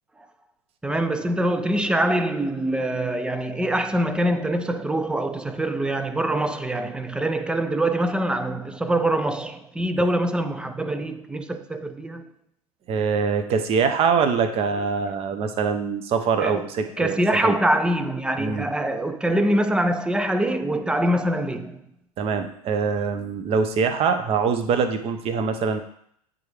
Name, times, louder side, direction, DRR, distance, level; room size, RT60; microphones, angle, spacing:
voice 1, 0.8-12.3 16.4-16.7 17.0-21.8, right 1 dB, 5° right, 0.4 m, -24 dB
voice 2, 12.9-17.5 18.4-18.7 22.2-25.8, right 5 dB, 30° right, 0.8 m, -24 dB
9.2 x 3.7 x 3.3 m
figure-of-eight pair, 95°, 20 cm